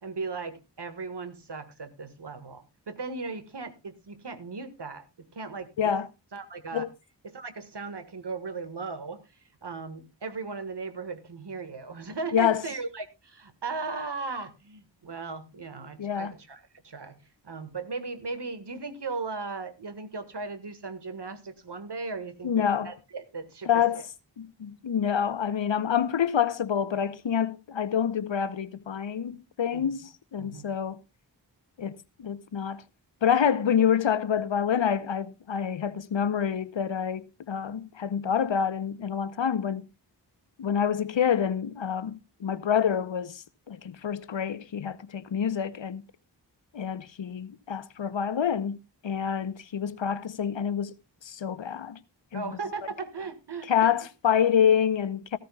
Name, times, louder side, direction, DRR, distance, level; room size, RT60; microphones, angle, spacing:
voice 1, 0.0-5.9 6.3-6.8 7.2-17.2 17.4-24.0 29.7-29.9 30.4-30.7 52.3-53.9, right 4 dB, 65° right, 1.8 m, -37 dB
voice 2, 16.0-16.3 22.4-22.9 23.7-24.0 24.4-31.0 31.8-32.8 33.2-39.8 40.6-46.0 46.7-48.8 49.0-50.9 51.2-52.0 52.3-52.6 53.7-55.4, left 8 dB, 85° left, 0.9 m, -27 dB
15.5 x 14.0 x 2.3 m
cardioid pair, 45°, 44 cm